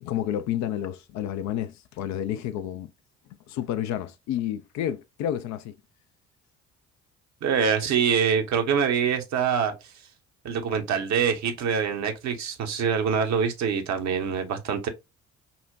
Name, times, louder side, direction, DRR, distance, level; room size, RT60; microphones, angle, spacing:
voice 1, 0.0-2.9 3.5-5.7, left 11 dB, 50° left, 0.5 m, -30 dB
voice 2, 7.4-9.7 10.4-14.9, right 7 dB, 50° right, 0.9 m, -25 dB
5.5 x 2.1 x 2.6 m
figure-of-eight pair, 50°, 36 cm